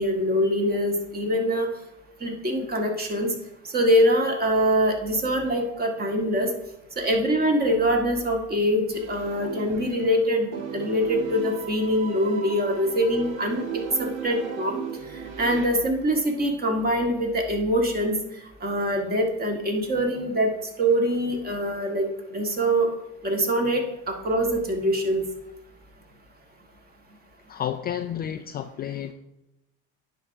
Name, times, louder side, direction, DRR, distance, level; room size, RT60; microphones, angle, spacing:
voice 1, 0.0-1.7 2.2-3.3 3.7-6.5 7.0-14.8 15.4-18.2 18.6-20.5 20.8-22.1 22.3-22.9 23.2-25.2, equal, 25° right, 3 dB, 1.9 m, -24 dB
sound 1, 8.9-10.2 10.5-15.7, right 7 dB, 65° right, 1.6 m, -36 dB
voice 2, 27.5-29.1, left 10 dB, 30° left, 7 dB, 0.4 m, -31 dB
9.7 x 3.6 x 6.4 m, 0.90 s
supercardioid pair, 100°, 35 cm